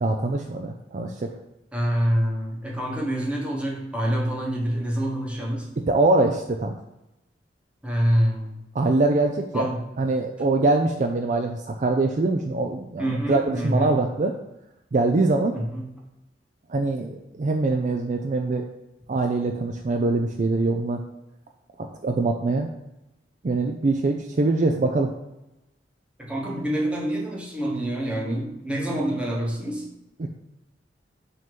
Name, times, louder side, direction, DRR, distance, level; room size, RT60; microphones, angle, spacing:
voice 1, 0.0-1.3 5.8-6.8 8.7-9.7 10.0-14.3 14.9-15.6 16.7-18.7 19.1-21.0 21.8-22.7 23.4-25.1 30.2-30.3, right 2 dB, 45° right, 4 dB, 0.4 m, -23 dB
voice 2, 1.7-5.7 7.8-8.6 9.5-9.8 13.0-14.0 15.5-15.9 26.2-29.8, equal, 5° right, -2 dB, 1.1 m, -26 dB
6.2 x 2.9 x 5.2 m, 0.92 s
head